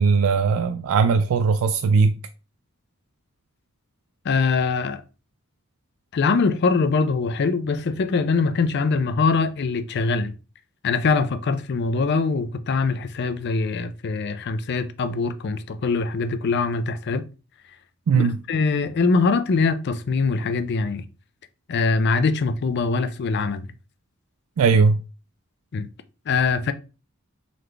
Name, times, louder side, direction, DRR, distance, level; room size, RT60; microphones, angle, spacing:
voice 1, 0.0-2.1 18.1-18.3 24.6-25.0, right 5 dB, 80° right, 0.4 m, -19 dB
voice 2, 4.2-5.0 6.1-10.3 10.8-17.2 18.1-21.1 21.7-23.7 25.7-25.9 26.3-26.7, left 4 dB, 55° left, 0.4 m, -23 dB
3.9 x 3.2 x 3.3 m
head